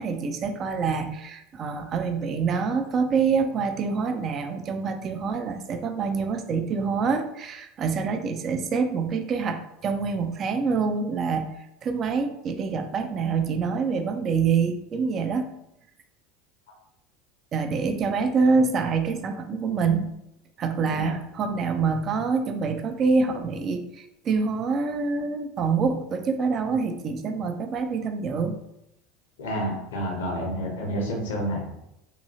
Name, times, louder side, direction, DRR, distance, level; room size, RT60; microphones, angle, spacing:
voice 1, 0.0-11.5 11.8-15.5 17.5-20.1 20.6-28.6 30.9-31.1, right 5 dB, 40° right, 7 dB, 0.3 m, -26 dB
voice 2, 29.4-31.7, equal, 75° left, 0 dB, 0.7 m, -29 dB
2.8 x 2.6 x 2.7 m, 0.81 s
hypercardioid pair, 75°, 0 cm